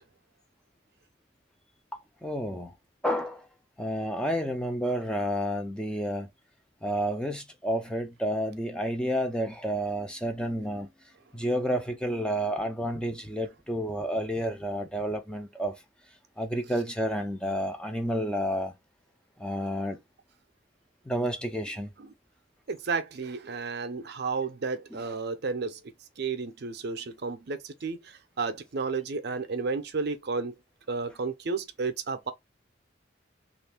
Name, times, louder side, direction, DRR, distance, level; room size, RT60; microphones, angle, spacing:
voice 1, 2.2-2.7 3.0-3.5 3.8-6.3 6.8-10.9 11.3-15.8 16.4-18.7 19.4-20.0 21.1-21.9, equal, 5° left, 0.4 m, -30 dB
voice 2, 22.7-25.8 26.2-30.5 30.9-32.3, right 4 dB, 55° right, 0.5 m, -32 dB
3.1 x 2.4 x 3.4 m
head